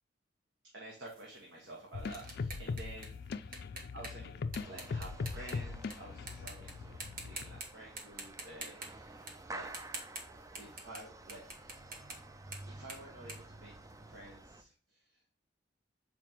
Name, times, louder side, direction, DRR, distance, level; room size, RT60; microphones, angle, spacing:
voice 1, 0.7-3.1 3.9-9.7 10.5-11.5 12.7-13.7 14.1-15.3, right 1 dB, 75° right, -2 dB, 1.5 m, -51 dB
sound 1, 1.1-5.9 6.3-6.7 7.0-7.7 8.0-14.3, right 2 dB, 50° right, 1.4 m, -47 dB
sound 2, 1.9-7.6, left 4 dB, 55° left, 0.4 m, -40 dB
sound 3, 4.6-14.6, right 2 dB, 20° right, 0.4 m, -51 dB
7.0 x 4.8 x 2.9 m, 0.43 s
head